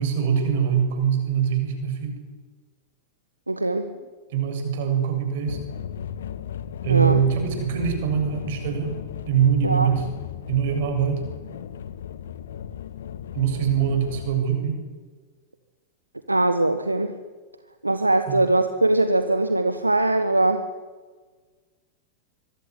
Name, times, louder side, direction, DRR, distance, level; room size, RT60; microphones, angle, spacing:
voice 1, 0.0-2.2 4.3-5.6 6.8-8.9 9.3-10.1 10.5-11.2 13.3-14.8 18.3-18.4, right 8 dB, 55° right, 6 dB, 7.4 m, -23 dB
voice 2, 3.5-3.9 6.9-7.2 9.6-9.9 16.3-17.1 17.8-20.7, right 2 dB, 85° right, 10 dB, 1.4 m, -21 dB
sound 1, 5.5-14.3, left 9 dB, 65° left, 1.5 m, -36 dB
25.5 x 23.0 x 9.8 m, 1.4 s
figure-of-eight pair, 90°, 0 cm